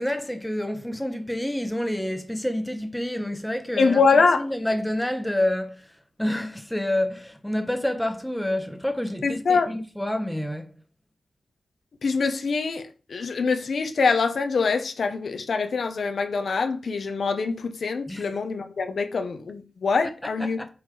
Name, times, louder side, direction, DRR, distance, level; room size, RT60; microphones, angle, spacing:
voice 1, 0.0-4.0 4.4-5.9 6.2-10.7 18.1-18.3 20.6-20.7, left 1 dB, 5° left, 1.3 m, -28 dB
voice 2, 3.8-4.5 9.2-9.7 12.0-12.8 13.1-20.6, left 4 dB, 65° left, 1.1 m, -24 dB
8.0 x 4.4 x 5.1 m
cardioid pair, 80°, 0 cm